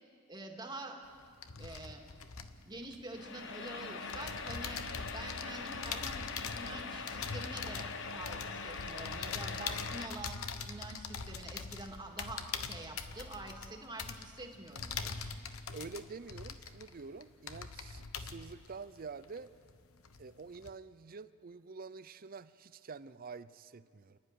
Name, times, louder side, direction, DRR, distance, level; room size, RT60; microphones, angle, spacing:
voice 1, 0.3-1.0 1.6-2.0 2.4-4.8 5.1-15.3, right 2 dB, 20° right, 2 dB, 2.1 m, -46 dB
sound 1, 1.1-3.7 4.1-19.8 20.0-20.7, left 5 dB, 80° left, 1.0 m, -43 dB
sound 2, 3.1-10.1, left 4 dB, 60° left, 1.2 m, -42 dB
voice 2, 15.7-19.5 20.2-24.2, right 4 dB, 45° right, 14 dB, 0.6 m, -47 dB
29.0 x 10.5 x 9.7 m, 2.2 s
head